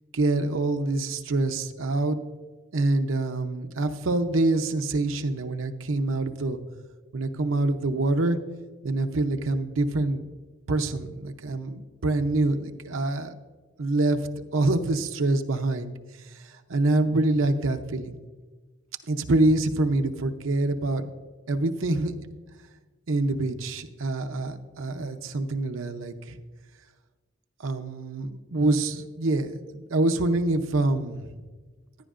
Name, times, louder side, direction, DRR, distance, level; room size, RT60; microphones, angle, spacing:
voice 1, 0.1-2.2 2.7-6.6 7.1-8.4 8.8-10.2 10.7-13.3 13.8-15.9 16.7-18.2 19.1-21.0 21.5-22.1 23.1-26.4 27.6-31.4, right 2 dB, 85° right, 7 dB, 0.7 m, -25 dB
15.5 x 10.0 x 2.5 m, 1.4 s
head